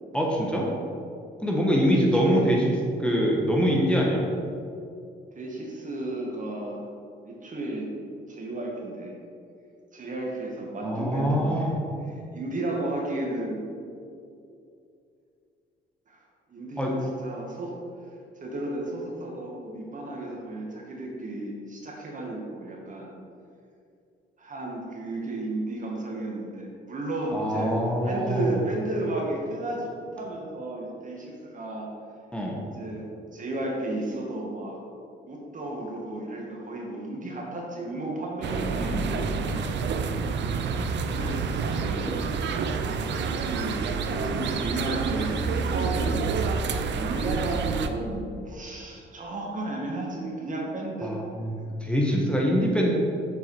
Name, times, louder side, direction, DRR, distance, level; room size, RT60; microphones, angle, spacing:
voice 1, 0.1-0.7 1.4-2.7 3.0-4.2 10.8-11.7 16.8-16.9 27.3-28.6 32.3-32.6 38.8-39.1 51.0-52.9, equal, 5° left, -3 dB, 1.2 m, -24 dB
voice 2, 1.8-2.4 5.3-6.8 7.2-7.9 8.3-9.1 9.9-11.7 12.0-13.6 16.1-16.2 16.5-17.8 18.4-23.1 24.4-27.7 28.0-31.9 32.6-34.8 35.2-39.7 41.0-42.3 43.0-46.3 46.9-51.2 51.6-51.7, right 2 dB, 40° right, -1 dB, 1.5 m, -33 dB
sound 1, 38.4-47.9, right 5 dB, 65° right, 0.6 m, -28 dB
7.1 x 4.7 x 4.7 m, 2.5 s
cardioid pair, 90°, 20 cm